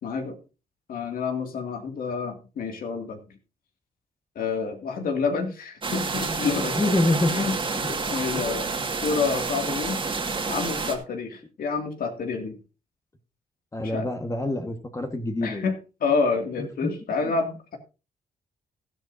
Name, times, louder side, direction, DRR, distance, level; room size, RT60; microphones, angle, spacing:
voice 1, 0.0-0.4 0.9-3.2 4.4-6.8 7.3-7.5 7.9-8.7 9.0-10.0 10.5-12.6 13.8-14.1 15.4-17.8, left 5 dB, 75° left, 5 dB, 2.4 m, -28 dB
sound 1, 5.8-11.0, right 4 dB, 35° right, 1.9 m, -29 dB
voice 2, 6.7-7.5 7.8-7.9 13.7-15.7 16.6-16.9 17.2-17.3, left 2 dB, 20° left, 4 dB, 1.5 m, -26 dB
13.0 x 12.0 x 2.7 m, 0.31 s
cardioid pair, 105°, 15 cm